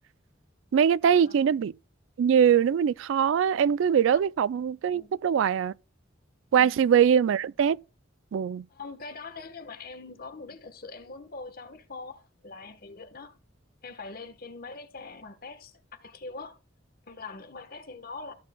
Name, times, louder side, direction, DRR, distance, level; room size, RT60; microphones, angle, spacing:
voice 1, 0.7-1.7 2.2-5.7 6.5-7.8 8.3-8.6, right 8 dB, 70° right, 0.3 m, -22 dB
voice 2, 8.7-13.4 13.8-16.6 17.0-18.3, left 3 dB, 50° left, 1.2 m, -43 dB
14.0 x 7.2 x 2.2 m
head